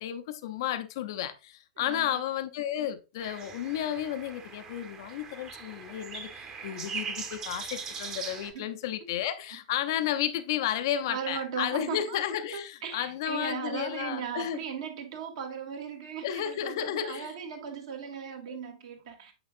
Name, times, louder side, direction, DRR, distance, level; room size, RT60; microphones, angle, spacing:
voice 1, 0.0-14.6 16.2-17.3 18.5-18.6, left 11 dB, 50° left, 0.7 m, -32 dB
voice 2, 1.8-2.2 8.5-8.7 9.0-9.1 11.1-19.3, right 7 dB, 55° right, 1.8 m, -37 dB
sound 1, 3.2-8.5, right 5 dB, 25° right, 1.2 m, -40 dB
8.7 x 5.0 x 2.6 m
figure-of-eight pair, 100°, 3 cm